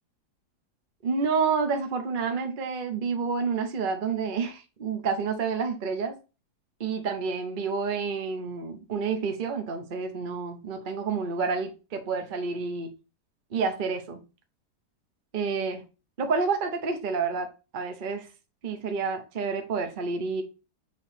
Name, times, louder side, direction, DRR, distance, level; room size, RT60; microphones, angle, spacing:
voice 1, 1.0-6.1 6.8-12.9 13.5-14.2 15.3-15.8 16.2-17.5 17.7-18.3 18.6-20.4, right 5 dB, 40° right, 0.8 m, -29 dB
6.2 x 3.1 x 5.8 m
omnidirectional pair, 1.7 m